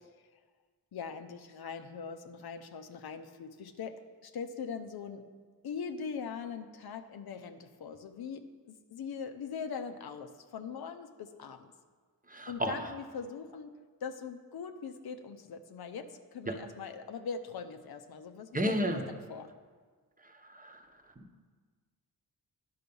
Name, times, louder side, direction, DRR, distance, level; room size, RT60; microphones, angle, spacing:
voice 1, 0.9-5.2 5.6-11.7 12.5-19.5, left 6 dB, 80° left, 7 dB, 0.7 m, -41 dB
voice 2, 12.3-12.9 16.5-16.6 18.5-19.0 20.2-20.8 21.2-21.4, equal, 20° right, 4 dB, 0.8 m, -33 dB
10.5 x 5.7 x 5.3 m, 1.5 s
wide cardioid pair, 85°, 37 cm